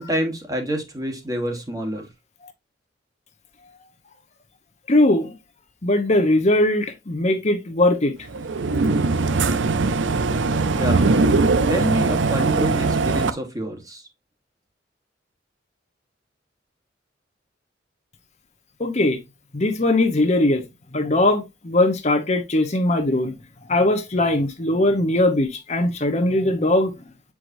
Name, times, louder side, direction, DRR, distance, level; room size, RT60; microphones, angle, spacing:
voice 1, 0.0-2.0 10.8-11.1 11.7-14.1, equal, 20° right, 1.4 m, -27 dB
voice 2, 4.9-5.3 5.8-8.1 18.8-19.2 19.5-20.6 20.9-23.3 23.7-26.9, left 1 dB, 40° left, 0.9 m, -20 dB
sound 1, 8.3-13.3, right 3 dB, 80° right, 0.6 m, -20 dB
7.6 x 4.8 x 2.6 m
head